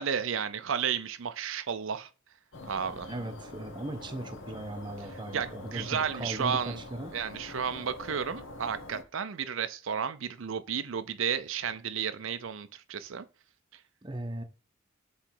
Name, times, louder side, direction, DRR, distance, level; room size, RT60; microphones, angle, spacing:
voice 1, 0.0-2.1 2.6-3.1 5.3-6.8 7.1-13.2, right 7 dB, 70° right, 0.6 m, -32 dB
sound 1, 2.5-9.0, left 2 dB, 65° left, 1.1 m, -45 dB
voice 2, 3.0-7.2 14.0-14.4, right 1 dB, 25° right, 0.8 m, -38 dB
7.7 x 3.2 x 4.6 m
head